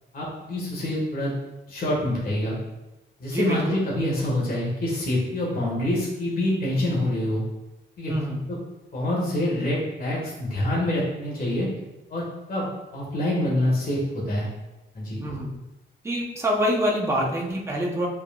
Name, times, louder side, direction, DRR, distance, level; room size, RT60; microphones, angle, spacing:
voice 1, 0.1-1.3 1.7-2.5 3.2-7.4 8.0-8.1 8.5-8.6 8.9-11.7 12.1-14.5 14.9-15.2 17.1-17.3, left 1 dB, 45° left, -4 dB, 1.7 m, -26 dB
voice 2, 8.1-8.4 15.2-15.5 16.0-18.1, equal, 15° right, -2 dB, 1.0 m, -25 dB
8.0 x 5.3 x 2.5 m, 1.0 s
wide cardioid pair, 160°, 20 cm